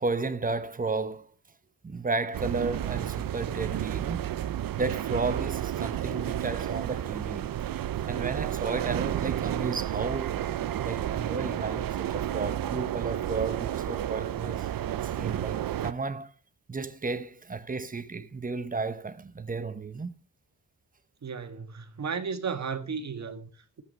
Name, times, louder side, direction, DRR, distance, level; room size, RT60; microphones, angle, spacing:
voice 1, 0.0-1.3 1.8-4.4 4.8-7.5 8.1-10.3 10.8-14.7 15.0-16.3 16.7-20.1, right 3 dB, 20° right, 1.0 m, -33 dB
sound 1, 2.3-15.9, right 11 dB, 60° right, 0.6 m, -31 dB
voice 2, 21.2-23.8, right 5 dB, 45° right, 1.7 m, -34 dB
14.5 x 8.4 x 5.3 m
wide cardioid pair, 140°, 38 cm